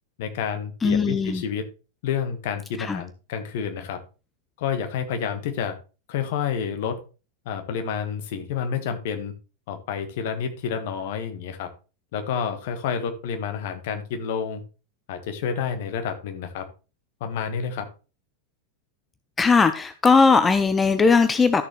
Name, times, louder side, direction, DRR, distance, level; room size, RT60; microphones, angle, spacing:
voice 1, 0.2-1.6 2.0-4.0 4.6-5.7 6.1-7.0 7.4-9.3 9.7-11.7 12.1-14.6 15.1-16.7 17.2-17.9, left 7 dB, 50° left, 7 dB, 1.5 m, -29 dB
voice 2, 0.8-1.4 2.8-3.0 19.4-21.6, left 4 dB, 15° left, 11 dB, 0.6 m, -19 dB
13.0 x 6.6 x 3.2 m, 0.32 s
figure-of-eight pair, 90°, 0 cm